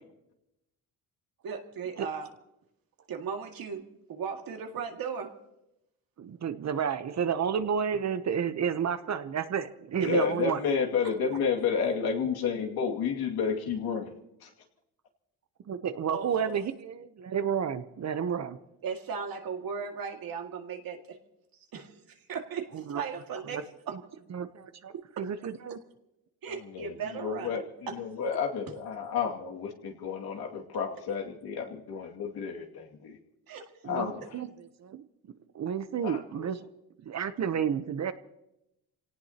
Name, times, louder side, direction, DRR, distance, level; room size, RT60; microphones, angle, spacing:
voice 1, 1.4-2.3 3.1-5.4 10.0-10.1 11.0-11.4 16.1-16.6 18.8-21.2 21.7-23.6 23.9-24.0 24.9-25.3 26.4-28.0 33.5-33.7, right 6 dB, 60° right, 3 dB, 2.1 m, -37 dB
voice 2, 6.2-10.6 15.7-18.6 22.7-23.0 23.5-23.6 24.3-25.8 33.8-35.0 35.5-36.7 37.0-38.1, right 7 dB, 45° right, 11 dB, 0.8 m, -31 dB
voice 3, 10.0-14.1 14.4-14.5 26.7-33.2 33.9-34.3 36.0-36.5, left 6 dB, 70° left, 1 dB, 2.4 m, -31 dB
27.0 x 18.0 x 2.9 m, 0.87 s
cardioid pair, 115°, 39 cm